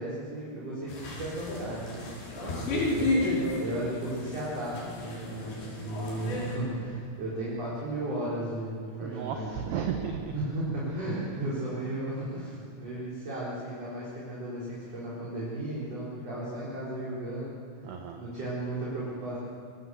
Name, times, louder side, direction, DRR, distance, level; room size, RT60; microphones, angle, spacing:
voice 1, 0.0-2.0 2.5-3.2 3.6-9.5 10.3-17.5 18.2-19.4, right 1 dB, 30° right, -7 dB, 5.1 m, -35 dB
sound 1, 0.9-6.6, left 2 dB, 60° left, 7.4 m, -32 dB
voice 2, 2.4-2.7 9.0-10.3 17.8-18.2, right 7 dB, 65° right, 3 dB, 2.8 m, -34 dB
25.5 x 21.5 x 8.0 m, 2.4 s
omnidirectional pair, 6.0 m